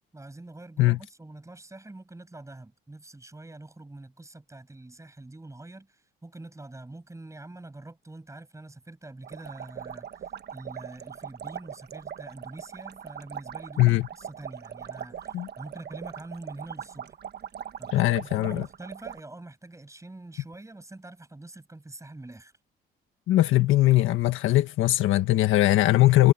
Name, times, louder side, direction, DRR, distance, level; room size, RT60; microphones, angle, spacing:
voice 1, 0.1-17.2 17.8-22.5, right 2 dB, 15° right, 7.0 m, -45 dB
sound 1, 9.2-19.2, right 9 dB, 55° right, 1.3 m, -40 dB
voice 2, 17.9-18.7 23.3-26.3, left 16 dB, 85° left, 1.6 m, -20 dB
cardioid pair, 80°, 20 cm